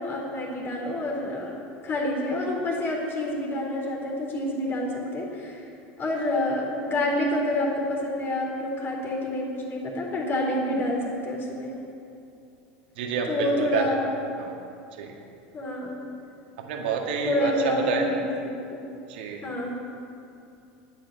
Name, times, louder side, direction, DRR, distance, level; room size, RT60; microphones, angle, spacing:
voice 1, 0.0-5.6 6.0-11.7 13.3-14.1 15.5-16.0 17.2-18.8 19.4-19.8, left 1 dB, 40° left, -1 dB, 4.0 m, -28 dB
voice 2, 13.0-13.8 14.4-14.5 15.0-15.1 16.6-18.1 19.1-19.4, right 6 dB, 75° right, 2 dB, 1.9 m, -28 dB
10.0 x 9.0 x 9.2 m, 2.6 s
hypercardioid pair, 95°, 6 cm